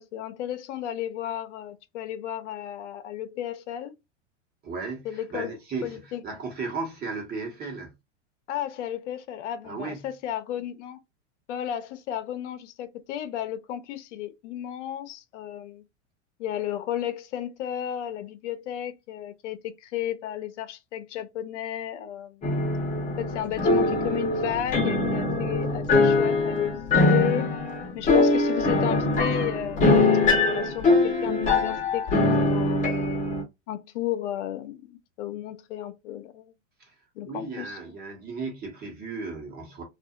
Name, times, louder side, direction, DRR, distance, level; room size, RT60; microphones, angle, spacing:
voice 1, 0.0-3.9 5.0-5.5 5.8-6.2 8.5-11.0 11.5-15.8 16.4-22.5 23.2-26.8 27.1-27.5 27.9-32.8 33.7-36.5 37.2-37.8, left 11 dB, 70° left, 0.7 m, -33 dB
voice 2, 4.6-7.9 9.6-10.1 36.8-36.9 37.2-39.8, right 4 dB, 25° right, 1.1 m, -35 dB
sound 1, 22.4-33.4, left 3 dB, 20° left, 0.9 m, -23 dB
2.6 x 2.4 x 2.4 m
hypercardioid pair, 125°, 37 cm